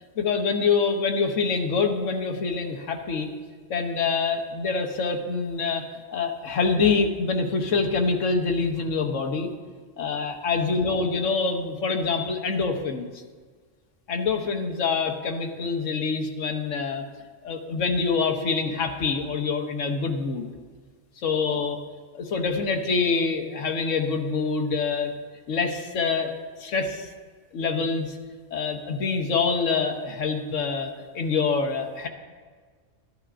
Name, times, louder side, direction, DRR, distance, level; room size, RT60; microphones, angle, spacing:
voice 1, 0.2-3.3 3.7-5.8 6.1-9.5 10.0-13.1 14.1-17.0 17.4-20.5 21.2-21.8 22.1-25.1 25.5-26.3 26.6-27.1 27.5-28.2 28.5-32.1, left 4 dB, 85° left, 4 dB, 1.3 m, -25 dB
13.5 x 11.0 x 2.5 m, 1.5 s
omnidirectional pair, 1.3 m